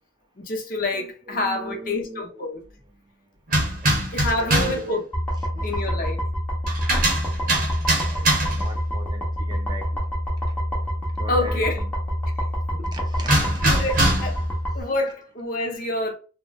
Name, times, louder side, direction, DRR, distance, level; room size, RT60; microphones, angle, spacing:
voice 1, 0.4-2.6 3.8-5.0 5.6-6.2 11.3-11.8 13.6-14.5 14.7-16.1, left 2 dB, 45° left, 0.6 m, -27 dB
voice 2, 0.9-2.4 3.8-3.9 4.4-5.0 5.5-5.9 7.7-10.0 11.2-11.9 12.8-13.8 14.8-14.9, equal, 20° right, 0.3 m, -39 dB
sound 1, 3.5-4.9 6.7-8.7 13.3-14.4, right 1 dB, 45° right, 0.8 m, -22 dB
sound 2, 5.1-14.8, equal, 10° left, 0.8 m, -27 dB
3.7 x 2.0 x 2.2 m
head